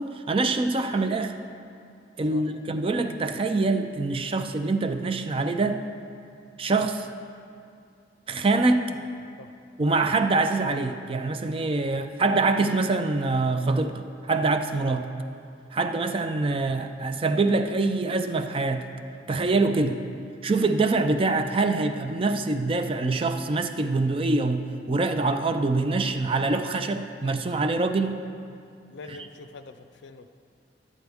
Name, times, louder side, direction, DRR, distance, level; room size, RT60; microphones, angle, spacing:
voice 1, 0.0-1.3 2.2-5.8 6.6-7.1 8.3-8.9 9.8-15.1 15.7-18.9 19.3-20.0 20.4-28.2 29.1-29.2, right 3 dB, 30° right, 8 dB, 0.4 m, -25 dB
voice 2, 28.9-30.3, left 3 dB, 80° left, 8 dB, 0.5 m, -44 dB
11.0 x 9.3 x 3.5 m, 2.5 s
head